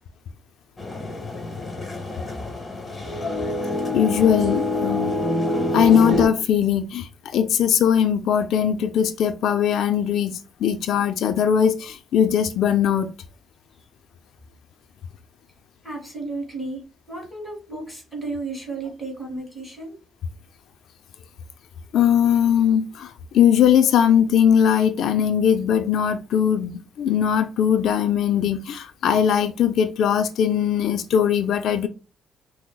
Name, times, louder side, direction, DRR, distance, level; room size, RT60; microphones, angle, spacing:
sound 1, 0.8-6.3, left 1 dB, 20° left, 1.0 m, -26 dB
voice 1, 3.9-5.1 5.5-13.1 21.9-31.9, left 8 dB, 70° left, 0.4 m, -20 dB
voice 2, 15.8-16.8 17.1-20.0, right 3 dB, ahead, 1.9 m, -33 dB
6.0 x 2.0 x 2.2 m
cardioid pair, 115°, 0 cm